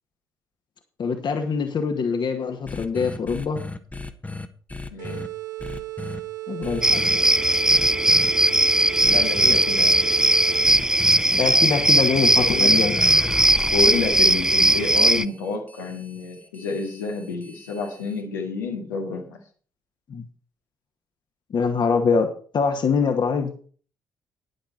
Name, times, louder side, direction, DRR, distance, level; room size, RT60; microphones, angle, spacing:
voice 1, 1.0-3.6 6.5-7.2 11.3-13.0 20.1-20.2 21.5-22.3 22.5-23.5, left 5 dB, 45° left, 5 dB, 2.0 m, -24 dB
sound 1, 2.7-5.3 5.6-6.2 6.6-7.2 7.7-8.3 9.0-9.6 10.7-11.2 12.4-18.2, left 3 dB, 15° left, 1.4 m, -36 dB
voice 2, 4.9-5.2 9.0-10.0 12.4-12.7 13.7-19.4, left 4 dB, 80° left, 0 dB, 2.3 m, -29 dB
sound 2, 5.0-10.9, right 19 dB, 75° right, 1.4 m, -35 dB
sound 3, 6.8-15.2, right 1 dB, 5° right, 0.5 m, -18 dB
11.5 x 10.5 x 4.2 m, 0.42 s
figure-of-eight pair, 45°, 10 cm